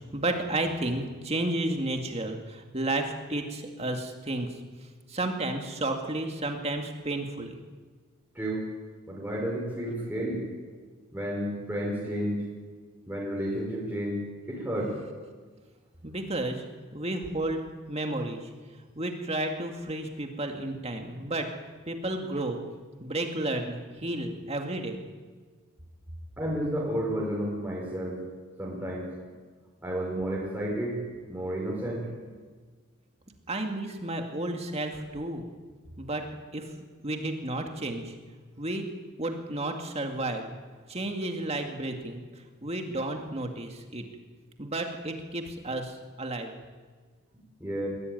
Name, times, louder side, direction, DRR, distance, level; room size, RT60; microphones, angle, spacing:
voice 1, 0.0-4.5 5.1-7.6 16.0-16.7 16.9-17.6 17.9-18.4 19.0-21.5 21.9-22.6 23.0-25.0 33.5-35.5 36.0-36.3 36.5-36.7 37.0-38.2 38.6-38.8 39.2-40.5 40.9-42.2 42.6-44.1 44.6-46.5, right 2 dB, 30° right, 4 dB, 2.1 m, -32 dB
voice 2, 9.1-10.4 11.1-12.4 13.1-14.2 14.5-14.9 26.4-28.2 28.6-29.1 29.8-30.9 31.3-32.1 47.6-47.9, right 1 dB, 10° right, -4 dB, 5.2 m, -31 dB
22.0 x 16.5 x 9.2 m, 1.5 s
head